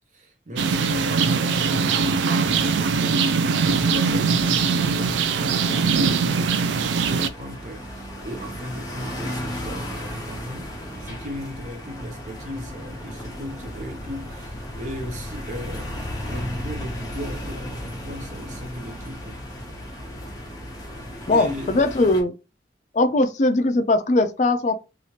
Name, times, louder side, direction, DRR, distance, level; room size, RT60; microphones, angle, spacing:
voice 1, 0.1-16.0 16.3-19.4 21.0-21.7, equal, 40° right, 0.6 m, -36 dB
sound 1, 0.6-7.3, right 5 dB, 80° right, 0.3 m, -21 dB
sound 2, 7.0-22.2, left 1 dB, 20° left, 0.7 m, -35 dB
voice 2, 21.3-22.3 22.9-24.8, left 2 dB, 40° left, 0.4 m, -20 dB
2.9 x 2.4 x 2.8 m
head